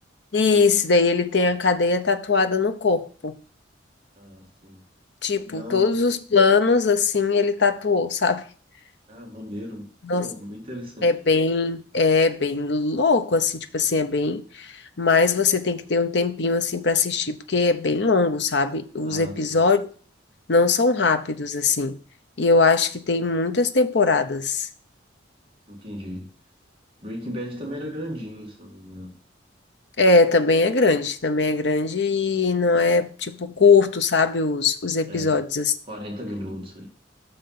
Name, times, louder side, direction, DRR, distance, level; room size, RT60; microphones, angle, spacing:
voice 1, 0.3-3.4 5.2-8.4 10.0-10.3 11.0-19.8 20.5-22.0 22.4-24.7 30.0-35.7, left 4 dB, 60° left, 0.8 m, -21 dB
voice 2, 4.2-4.8 5.5-6.0 9.1-9.9 10.2-11.1 19.0-19.6 25.7-26.3 27.0-29.2 35.1-35.4 35.9-36.9, equal, 25° right, 2.1 m, -36 dB
6.6 x 5.6 x 5.8 m
head